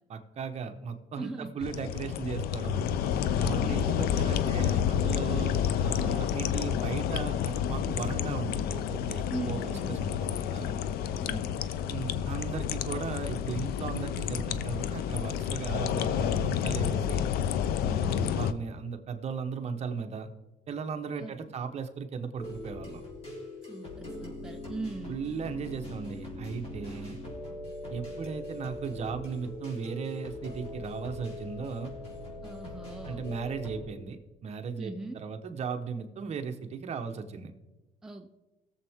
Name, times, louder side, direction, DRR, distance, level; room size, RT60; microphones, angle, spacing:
voice 1, 0.1-2.8 3.4-10.7 11.9-17.3 18.0-20.3 20.7-23.0 25.1-27.2 27.9-31.9 33.1-37.5, right 6 dB, 40° right, 6 dB, 1.1 m, -37 dB
voice 2, 1.2-1.7 3.4-3.9 9.3-10.0 11.2-11.6 17.8-18.4 21.2-21.3 23.7-25.2 32.4-33.2 34.8-35.2 38.0-38.3, right 3 dB, 5° right, 4 dB, 0.6 m, -40 dB
sound 1, 1.6-18.5, left 9 dB, 75° left, 0.6 m, -29 dB
sound 2, 22.4-33.8, left 1 dB, 40° left, 3.7 m, -41 dB
18.5 x 7.3 x 3.6 m, 1.1 s
cardioid pair, 125°, 16 cm